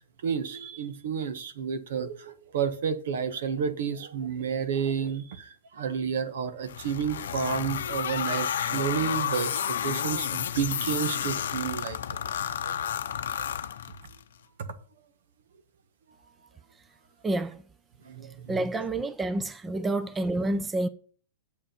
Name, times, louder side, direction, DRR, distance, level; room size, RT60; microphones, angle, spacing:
voice 1, 0.2-12.0 12.2-12.3 12.6-12.9 18.0-18.7, right 7 dB, 70° right, 1.3 m, -31 dB
sound 1, 6.7-14.2, left 9 dB, 75° left, 0.7 m, -31 dB
voice 2, 17.2-17.6 18.5-20.9, right 2 dB, 15° right, 0.7 m, -28 dB
8.9 x 7.4 x 5.3 m
hypercardioid pair, 115°, 0 cm